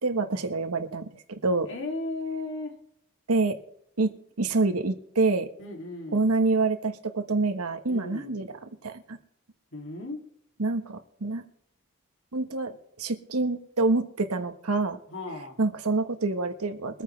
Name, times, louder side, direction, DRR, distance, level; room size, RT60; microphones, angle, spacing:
voice 1, 0.0-1.7 3.3-3.6 4.0-5.5 6.1-9.2 10.6-11.4 12.3-12.7 13.0-15.0 15.6-17.0, right 3 dB, 80° right, 8 dB, 1.2 m, -27 dB
voice 2, 1.7-2.7 5.6-6.3 7.8-8.4 9.7-10.2 15.1-15.6, left 2 dB, 55° left, 1 dB, 2.6 m, -35 dB
23.0 x 9.2 x 3.3 m, 0.77 s
head